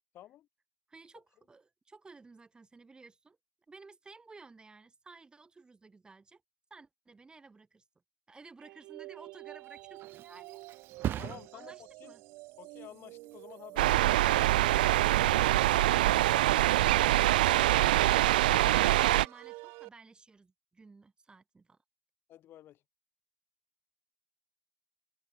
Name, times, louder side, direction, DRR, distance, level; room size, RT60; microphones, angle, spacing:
voice 1, 0.1-0.5 11.2-12.1 12.6-16.1 22.3-22.8, left 12 dB, 50° left, 7.8 m, -52 dB
voice 2, 0.9-3.4 3.7-6.4 6.7-7.8 8.3-10.6 11.5-12.2 17.7-21.8, right 4 dB, 20° right, 4.9 m, -55 dB
sound 1, 8.6-19.9, right 23 dB, 65° right, 2.0 m, -49 dB
Thump thud, 9.4-16.9 17.3-17.7, right 11 dB, 50° right, 7.1 m, -44 dB
sound 2, 13.8-19.3, right 15 dB, 90° right, 0.5 m, -24 dB
supercardioid pair, 95°, 5 cm